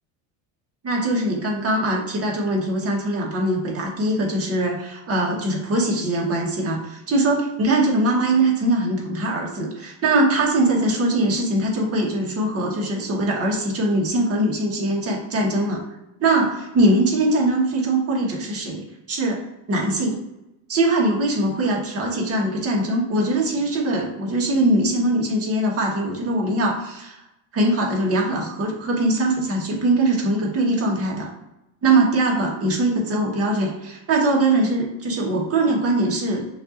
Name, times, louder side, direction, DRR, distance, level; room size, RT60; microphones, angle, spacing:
voice 1, 0.8-15.8 16.2-16.5 16.7-19.4 19.7-20.2 20.7-27.2 27.5-31.3 31.8-36.5, right 1 dB, 35° right, -2 dB, 1.5 m, -22 dB
5.8 x 2.7 x 2.6 m, 0.90 s
cardioid pair, 115°, 41 cm